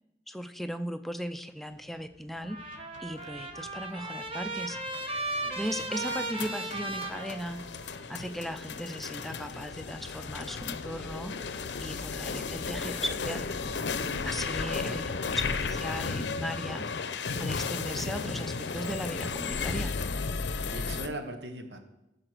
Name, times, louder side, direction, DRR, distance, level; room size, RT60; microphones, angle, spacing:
voice 1, 0.3-4.8 5.6-7.6 8.1-13.5 14.2-16.9 17.4-19.9, equal, ahead, 8 dB, 0.4 m, -37 dB
Trumpet, 2.4-8.0, right 2 dB, 30° right, 1.1 m, -36 dB
sound 1, 2.5-21.1, left 4 dB, 85° left, 0.6 m, -35 dB
voice 2, 13.8-14.3 20.6-21.8, right 2 dB, 75° right, 6 dB, 1.3 m, -40 dB
14.0 x 5.0 x 6.1 m, 0.93 s
head